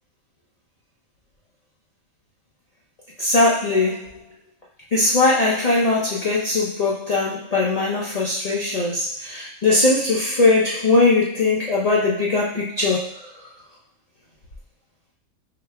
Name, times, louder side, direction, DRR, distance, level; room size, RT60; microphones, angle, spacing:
voice 1, 3.2-4.2 4.9-13.1, left 3 dB, 75° left, -6 dB, 0.3 m, -20 dB
4.0 x 2.2 x 3.3 m, 0.65 s
omnidirectional pair, 1.5 m